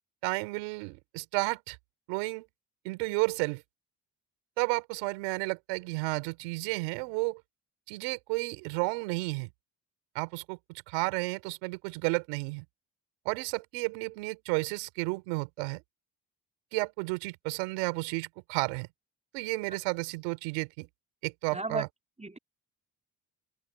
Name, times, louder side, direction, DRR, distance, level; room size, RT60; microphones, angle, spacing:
voice 1, 0.2-1.8 2.1-2.4 2.8-3.6 4.6-7.4 7.9-9.5 10.1-10.6 10.9-12.6 13.2-15.8 16.7-18.9 19.3-20.9 21.2-21.9, right 28 dB, 90° right, 4.4 m, -32 dB
voice 2, 21.5-21.9 22.2-22.4, right 3 dB, 15° right, 3.4 m, -34 dB
hypercardioid pair, 45°, 49 cm